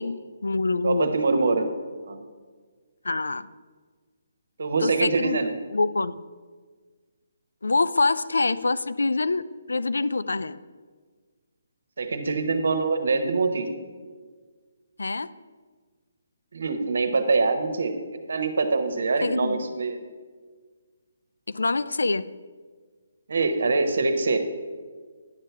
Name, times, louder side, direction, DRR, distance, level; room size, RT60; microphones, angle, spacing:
voice 1, 0.0-1.2 3.0-3.5 4.8-6.2 7.6-10.6 15.0-15.3 19.2-19.6 21.5-22.2, left 3 dB, 80° left, 15 dB, 0.3 m, -25 dB
voice 2, 0.8-1.7 2.1-2.2 4.6-5.5 12.0-13.7 16.5-17.9 18.3-20.0 23.3-24.4, right 3 dB, 65° right, 8 dB, 1.0 m, -24 dB
9.8 x 6.7 x 4.6 m, 1.5 s
figure-of-eight pair, 145°, 0 cm